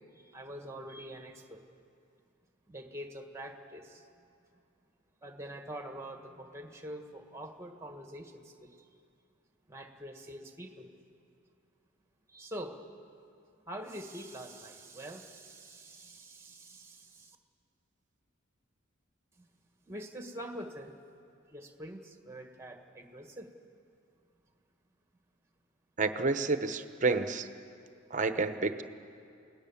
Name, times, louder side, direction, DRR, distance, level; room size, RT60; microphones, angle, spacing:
voice 1, 0.1-1.6 2.7-4.1 5.2-8.9 9.7-10.9 12.3-12.8 13.7-17.4 19.4-19.5 19.8-20.9 21.5-23.5, right 1 dB, 15° right, 5 dB, 1.7 m, -45 dB
voice 2, 26.0-27.5 28.1-28.8, right 3 dB, 40° right, 9 dB, 1.0 m, -29 dB
28.5 x 18.0 x 7.2 m, 2.5 s
head